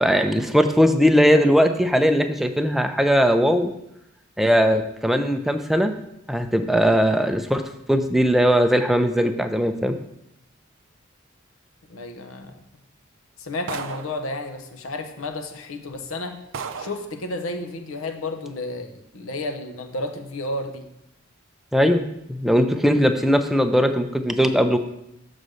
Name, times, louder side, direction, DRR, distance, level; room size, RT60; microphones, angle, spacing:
voice 1, 0.0-3.7 4.4-5.9 6.3-7.6 7.9-9.9 21.7-22.0 22.3-24.8, equal, ahead, 7 dB, 0.4 m, -19 dB
voice 2, 11.9-12.6 13.4-16.4 16.8-20.9, left 2 dB, 85° left, 6 dB, 0.9 m, -32 dB
sound 1, 13.7-14.3 15.3-15.4 15.9-16.0 16.5-17.1, right 5 dB, 65° right, 0.5 m, -34 dB
6.5 x 4.0 x 6.3 m, 0.81 s
head